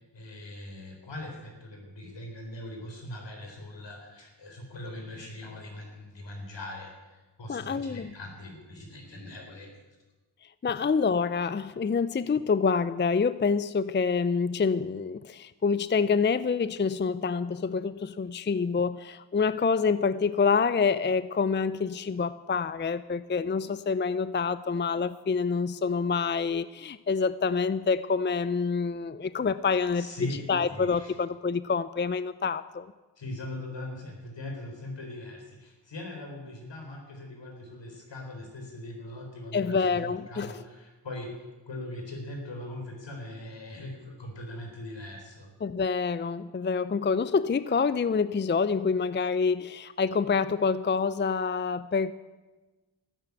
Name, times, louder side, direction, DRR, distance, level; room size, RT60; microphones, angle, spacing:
voice 1, 0.1-9.8 29.9-31.1 33.2-41.3 41.7-45.5, left 1 dB, 70° left, 2 dB, 4.2 m, -41 dB
voice 2, 7.5-8.1 10.6-30.1 30.5-32.9 39.5-40.5 45.6-52.1, left 5 dB, 25° left, 15 dB, 0.5 m, -27 dB
13.5 x 9.8 x 8.4 m, 1.2 s
cardioid pair, 45°, 45 cm